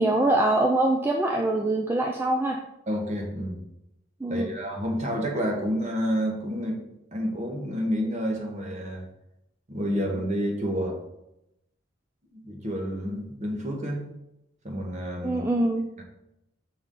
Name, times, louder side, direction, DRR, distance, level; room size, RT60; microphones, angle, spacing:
voice 1, 0.0-2.6 4.2-4.5 15.2-15.9, right 2 dB, 10° right, 1 dB, 0.4 m, -24 dB
voice 2, 2.9-3.6 4.3-6.8 7.1-9.1 9.7-11.0 12.3-14.0 14.6-15.4 16.0-16.1, equal, 35° right, 1 dB, 1.1 m, -29 dB
6.9 x 4.0 x 3.7 m, 0.87 s
head